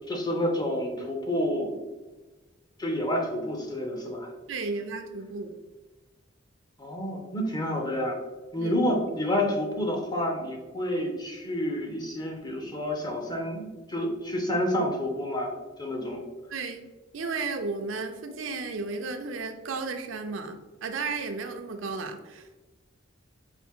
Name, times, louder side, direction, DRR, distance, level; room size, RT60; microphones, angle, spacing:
voice 1, 0.1-1.8 2.8-4.3 6.8-8.2 8.5-15.5 15.8-16.2, left 1 dB, 20° left, 1 dB, 0.6 m, -29 dB
voice 2, 4.5-5.6 8.6-8.7 16.5-16.8 17.1-22.7, right 4 dB, 75° right, 6 dB, 0.5 m, -34 dB
4.4 x 2.5 x 3.6 m, 1.2 s
head